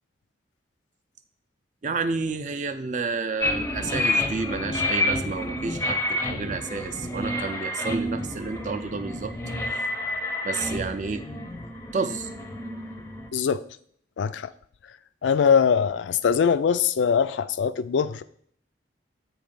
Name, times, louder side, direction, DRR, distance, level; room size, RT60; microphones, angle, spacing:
voice 1, 1.8-9.3 10.4-11.2 11.9-12.3, right 4 dB, 40° right, 9 dB, 0.4 m, -30 dB
sound 1, 3.4-13.3, left 1 dB, 15° left, 0.5 m, -29 dB
voice 2, 14.2-14.5 15.2-18.2, left 6 dB, 70° left, 13 dB, 0.3 m, -22 dB
7.6 x 3.2 x 5.1 m, 0.62 s
head